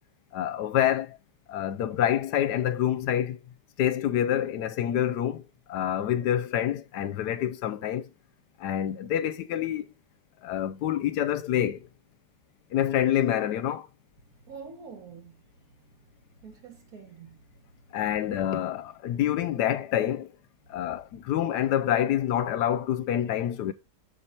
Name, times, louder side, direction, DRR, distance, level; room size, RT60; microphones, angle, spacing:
voice 1, 0.3-1.2 1.5-3.4 3.8-5.4 5.7-8.1 8.6-9.9 10.4-11.9 12.7-13.9 17.9-20.3 20.7-23.7, left 11 dB, 80° left, 1.2 m, -27 dB
voice 2, 14.5-15.4 16.4-17.6 18.1-18.3, right 5 dB, 60° right, 1.4 m, -46 dB
6.6 x 4.3 x 4.4 m
omnidirectional pair, 1.8 m